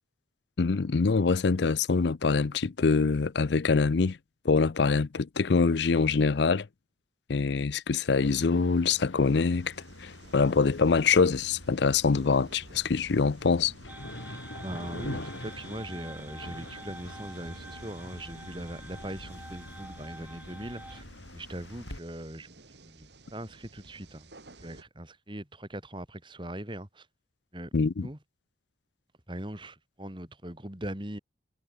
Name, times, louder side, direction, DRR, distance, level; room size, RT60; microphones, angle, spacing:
voice 1, 0.6-4.2 4.4-6.7 7.3-13.7 27.7-28.1, left 4 dB, 65° left, 0.5 m, -24 dB
sound 1, 8.2-22.0, left 1 dB, 90° left, 5.3 m, -44 dB
sound 2, 9.2-24.8, right 2 dB, 65° right, 2.8 m, -55 dB
sound 3, 13.9-21.0, right 1 dB, 10° right, 3.6 m, -48 dB
voice 2, 14.6-21.1 21.3-22.5 22.8-24.3 24.6-27.1 27.5-27.7 28.0-28.2 29.3-31.2, right 1 dB, 25° right, 3.0 m, -40 dB
head